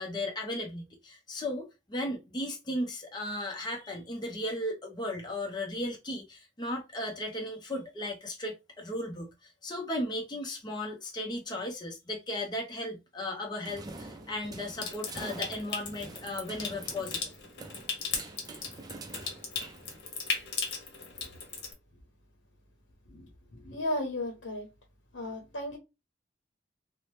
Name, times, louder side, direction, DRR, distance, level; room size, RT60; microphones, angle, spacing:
voice 1, 0.0-17.3, left 1 dB, 25° left, 0.6 m, -36 dB
sound 1, 13.6-20.4, right 2 dB, 20° right, 0.4 m, -46 dB
Water tap faucet / Sink (filling or washing) / Trickle dribble, 14.8-21.7, left 5 dB, 60° left, 0.9 m, -37 dB
voice 2, 23.6-24.7 25.1-25.8, left 1 dB, 85° left, 0.7 m, -34 dB
2.7 x 2.0 x 3.2 m
head